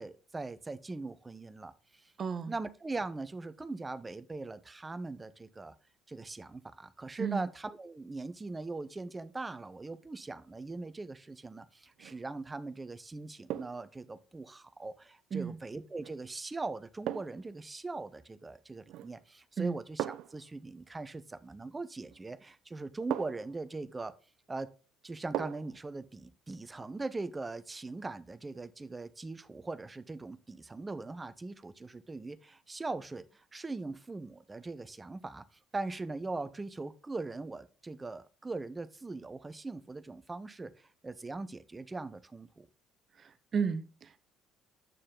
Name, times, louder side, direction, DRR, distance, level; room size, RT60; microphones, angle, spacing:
voice 1, 0.0-2.1 2.5-5.7 6.1-24.1 24.5-24.7 25.0-35.4 35.7-42.7, right 3 dB, 20° right, 0.9 m, -41 dB
voice 2, 2.2-2.5 7.2-7.5 15.3-15.6 19.6-19.8 43.2-44.2, right 6 dB, 40° right, 1.1 m, -33 dB
sound 1, 11.9-12.3 13.5-13.9 16.0-16.2 17.1-17.5 18.9-19.2 20.0-20.4 22.1-22.2 23.1-23.6 25.3-25.8 26.2-26.3, right 12 dB, 60° right, 0.4 m, -38 dB
9.3 x 6.6 x 3.8 m
hypercardioid pair, 55°, 0 cm